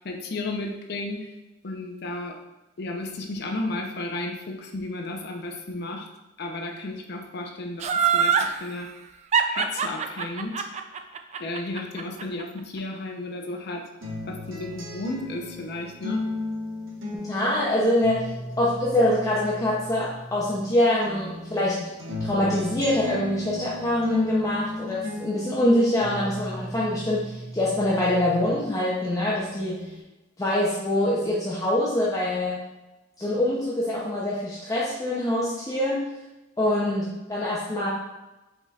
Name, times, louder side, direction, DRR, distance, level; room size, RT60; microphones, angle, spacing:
voice 1, 0.0-1.3 1.6-2.4 2.8-6.1 6.4-8.9 9.5-10.6 11.4-13.9 14.3-16.3, left 2 dB, 55° left, 2 dB, 0.6 m, -33 dB
Laughter, 7.8-8.5 9.3-12.4 12.8-12.9, right 7 dB, 35° right, 0.3 m, -23 dB
sound 1, 14.0-20.7 21.0-28.7 29.0-30.0, left 2 dB, 85° right, 1.1 m, -35 dB
voice 2, 17.3-18.3 18.6-21.8 22.2-29.8 30.4-32.6 33.2-36.1 36.6-37.9, left 1 dB, 20° left, -6 dB, 0.6 m, -24 dB
5.2 x 4.1 x 2.4 m, 1.0 s
head